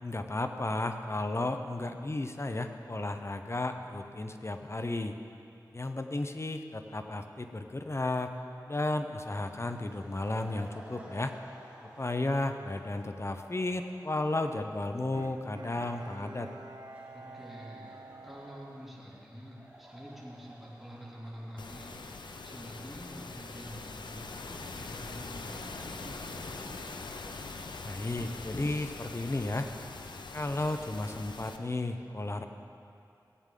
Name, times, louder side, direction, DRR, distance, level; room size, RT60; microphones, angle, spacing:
voice 1, 0.0-5.1 5.7-8.3 8.7-11.3 12.0-16.5 27.8-29.7 30.3-32.5, left 2 dB, 35° left, 7 dB, 0.7 m, -33 dB
sound 1, 9.2-28.6, right 1 dB, 20° right, 2.6 m, -56 dB
Bowed string instrument, 15.1-19.6 20.1-20.2, right 3 dB, 70° right, 0.8 m, -49 dB
voice 2, 17.1-27.0, equal, ahead, -5 dB, 2.9 m, -47 dB
sound 2, 21.6-31.6, left 3 dB, 85° left, 0.6 m, -43 dB
16.5 x 8.9 x 3.8 m, 2.7 s
wide cardioid pair, 50°, 8 cm